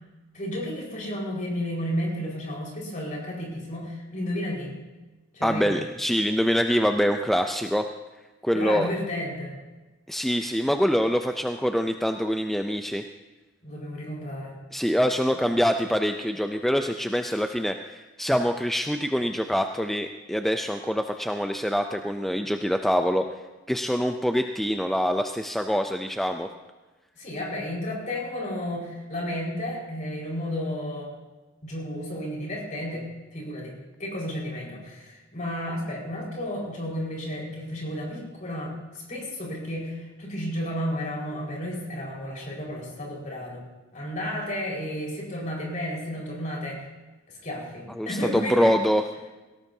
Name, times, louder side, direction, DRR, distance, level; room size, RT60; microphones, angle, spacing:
voice 1, 0.3-4.7 5.3-5.7 8.5-9.6 13.6-14.6 27.2-31.2 31.6-38.8 39.1-43.6 43.9-46.9 47.4-48.8, equal, 40° left, -3 dB, 4.8 m, -32 dB
voice 2, 5.4-7.9 8.4-8.9 10.1-13.0 14.7-23.2 23.7-26.5 48.0-49.0, equal, ahead, 5 dB, 0.4 m, -25 dB
18.0 x 17.5 x 2.7 m, 1.2 s
head